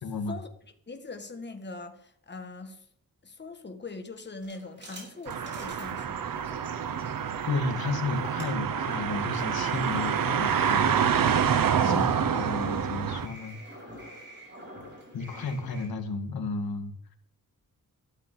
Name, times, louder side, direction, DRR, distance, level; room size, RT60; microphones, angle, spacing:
voice 1, 0.0-0.4 7.4-11.0 11.8-13.6 15.1-16.9, left 3 dB, 85° left, 6 dB, 2.2 m, -33 dB
voice 2, 0.9-2.9 3.2-6.7 11.8-12.3, left 2 dB, 30° left, 6 dB, 1.8 m, -41 dB
sound 1, 4.4-15.9, right 1 dB, 30° right, 6.4 m, -47 dB
sound 2, 5.3-13.3, right 7 dB, 65° right, 1.2 m, -27 dB
13.0 x 7.7 x 8.3 m, 0.65 s
wide cardioid pair, 140°, 36 cm